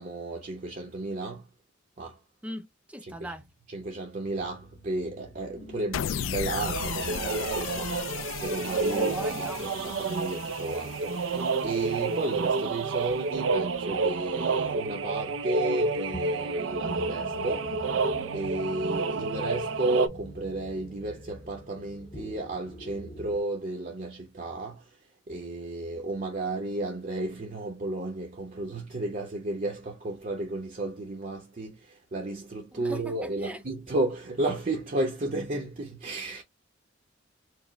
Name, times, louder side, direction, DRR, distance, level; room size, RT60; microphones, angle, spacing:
voice 1, 0.0-1.4 2.0-2.2 3.0-3.3 3.7-17.8 18.3-25.0 25.3-36.4, right 2 dB, 40° right, 0.7 m, -33 dB
voice 2, 2.4-3.4 8.9-9.7 32.7-33.6, equal, 5° right, 0.4 m, -40 dB
sound 1, 4.2-23.4, equal, 30° left, 0.8 m, -47 dB
sound 2, 5.9-12.3, left 9 dB, 80° left, 0.3 m, -36 dB
sound 3, 6.6-20.1, right 4 dB, 80° right, 0.4 m, -30 dB
4.7 x 2.1 x 3.1 m
head